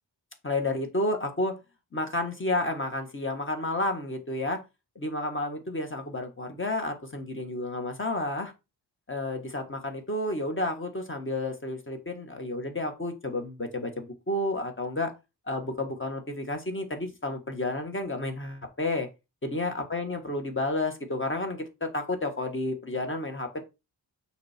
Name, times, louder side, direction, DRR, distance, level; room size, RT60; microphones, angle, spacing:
voice 1, 0.4-1.6 1.9-4.6 4.9-8.5 9.1-15.1 15.5-19.1 19.4-23.5, left 2 dB, 30° left, 6 dB, 1.5 m, -31 dB
6.5 x 4.7 x 4.3 m, 0.25 s
wide cardioid pair, 150°, 42 cm